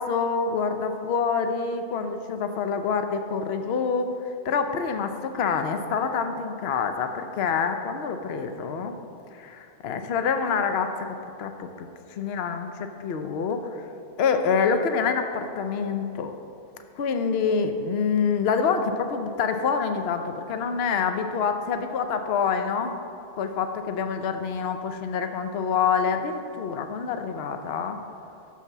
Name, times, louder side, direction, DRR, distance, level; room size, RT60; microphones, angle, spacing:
voice 1, 0.0-4.2 4.4-9.0 9.4-11.1 11.4-11.9 12.1-13.7 14.2-16.3 17.0-23.0 23.4-28.0, left 6 dB, 65° left, 7 dB, 0.9 m, -26 dB
12.0 x 4.7 x 7.1 m, 2.6 s
omnidirectional pair, 1.2 m